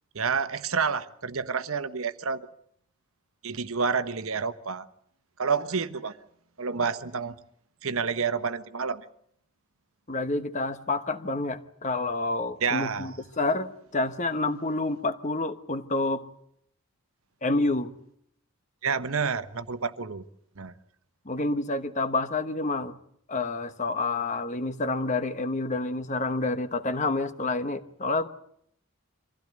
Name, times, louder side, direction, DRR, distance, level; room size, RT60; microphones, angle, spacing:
voice 1, 0.1-2.4 3.4-4.9 5.4-6.1 6.6-7.3 7.8-9.0 12.6-13.2 18.8-20.2 20.6-20.7, right 5 dB, 70° right, 12 dB, 1.1 m, -29 dB
voice 2, 10.1-16.3 17.4-17.9 21.2-23.0 23.3-28.3, left 2 dB, 30° left, 11 dB, 1.2 m, -28 dB
24.5 x 15.5 x 9.3 m, 0.70 s
head